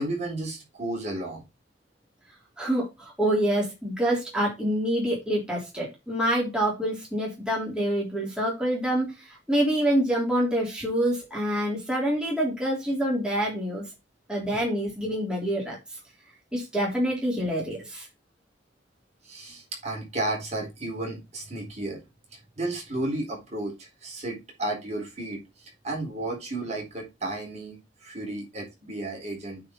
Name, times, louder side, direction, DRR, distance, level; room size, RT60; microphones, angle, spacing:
voice 1, 0.0-1.4 14.4-14.6 19.2-22.0 22.3-29.6, right 2 dB, 40° right, 0 dB, 4.2 m, -33 dB
voice 2, 2.6-13.9 14.3-15.8 16.5-18.1, right 1 dB, 5° right, -4 dB, 3.7 m, -26 dB
9.0 x 5.0 x 3.9 m, 0.23 s
head